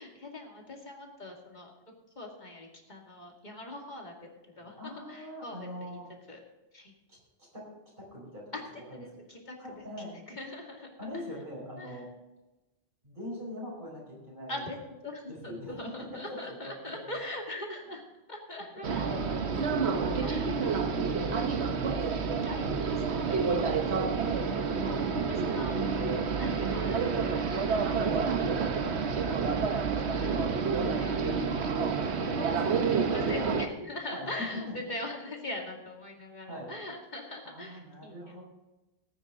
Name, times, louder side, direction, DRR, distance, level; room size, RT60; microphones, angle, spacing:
voice 1, 0.0-1.7 2.2-4.2 4.6-6.0 6.3-6.4 6.7-6.9 8.5-8.6 8.9-9.6 10.3-10.9 11.8-11.9 14.5-18.0 18.3-19.1 20.2-20.8 22.5-24.9 25.3-25.8 26.4-27.0 27.7-28.0 28.4-29.8 30.2-30.3 30.8-31.1 31.9-32.2 33.1-38.1, left 1 dB, 40° left, 0 dB, 2.4 m, -42 dB
voice 2, 4.5-6.1 7.1-7.7 8.0-9.3 9.6-10.2 11.0-12.1 13.0-14.7 15.3-17.2 17.8-18.0 18.7-21.4 21.8-22.8 23.4-23.8 30.7-31.5 32.1-33.2 34.1-34.8 36.5-36.7 37.4-38.4, left 1 dB, 50° right, -4 dB, 5.3 m, -43 dB
sound 1, 18.8-33.7, right 5 dB, 70° right, 1.3 m, -29 dB
18.0 x 9.2 x 3.7 m, 1.0 s
omnidirectional pair, 1.1 m